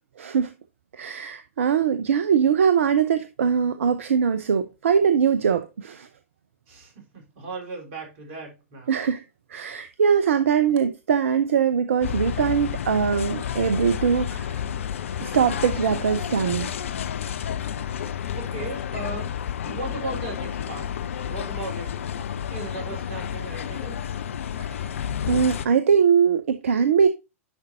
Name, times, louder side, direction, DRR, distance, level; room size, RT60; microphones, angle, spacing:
voice 1, 0.2-0.5 0.9-6.1 8.9-9.2 9.5-14.5 15.2-16.7 24.6-24.8 25.3-27.1, right 7 dB, 70° right, 0.7 m, -22 dB
voice 2, 6.7-9.0 18.4-19.3 19.6-20.9 21.3-21.9 22.5-24.0, right 3 dB, 50° right, 4.2 m, -36 dB
sound 1, 12.0-25.6, left 9 dB, 65° left, 0.7 m, -30 dB
10.5 x 5.3 x 2.7 m
figure-of-eight pair, 100°, 7 cm